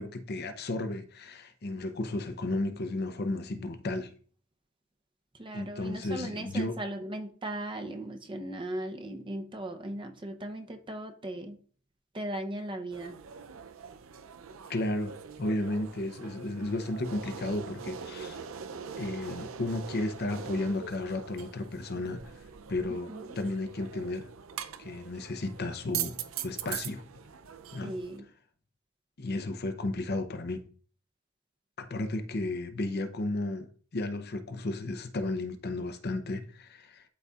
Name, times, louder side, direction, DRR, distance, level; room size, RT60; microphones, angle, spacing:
voice 1, 0.0-4.1 5.5-6.8 14.7-18.4 19.0-22.3 22.7-24.3 24.8-27.0 27.7-28.0 29.2-30.7 31.8-37.0, left 2 dB, 50° left, 0.7 m, -33 dB
voice 2, 5.4-11.6 12.1-13.2 22.9-23.4 27.8-28.2, right 1 dB, 25° right, 0.8 m, -38 dB
sound 1, 12.9-28.2, right 8 dB, 80° right, 0.5 m, -42 dB
12.0 x 4.1 x 2.4 m
head